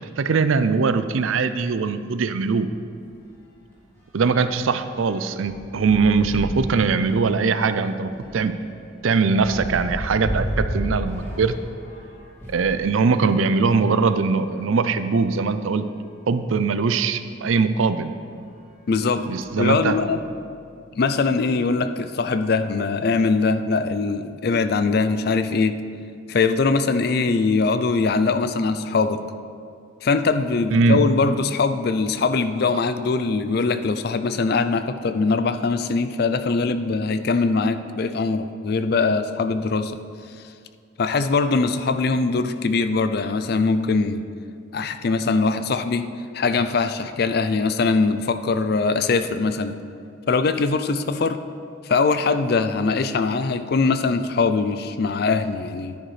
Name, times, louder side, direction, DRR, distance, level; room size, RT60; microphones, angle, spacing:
voice 1, 0.2-2.7 4.1-8.5 9.0-11.5 12.5-15.8 16.3-18.1 19.3-20.0 30.7-31.0, right 4 dB, 80° right, 11 dB, 0.5 m, -21 dB
sound 1, 2.5-2.6 2.8-3.0 3.3-12.8 13.5-14.8 15.5-15.6 15.9-16.0 17.6-17.7 18.4-18.7 19.1-20.3, equal, 15° left, 2.0 m, -34 dB
voice 2, 18.9-19.3 19.6-20.2 21.0-25.8 26.3-29.2 30.0-39.9 41.0-44.3 44.7-46.1 46.3-49.8 50.3-51.4 51.8-56.0, left 4 dB, 50° left, 10 dB, 0.4 m, -22 dB
10.5 x 10.0 x 3.3 m, 2.3 s
head